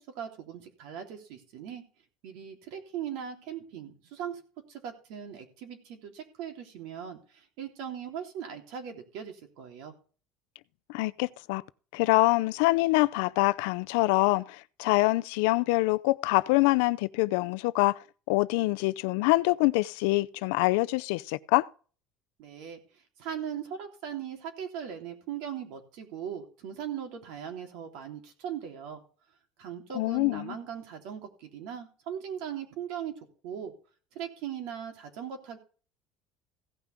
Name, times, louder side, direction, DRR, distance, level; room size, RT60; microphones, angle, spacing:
voice 1, 0.1-1.8 2.2-4.4 4.7-9.9 22.4-22.8 23.2-29.0 29.6-33.1 33.4-33.7 34.1-35.6, right 8 dB, 60° right, 3.3 m, -39 dB
voice 2, 10.9-11.6 11.9-18.0 18.3-21.7 29.9-30.6, left 21 dB, 80° left, 0.6 m, -25 dB
16.5 x 5.9 x 5.2 m
cardioid pair, 170°, 0 cm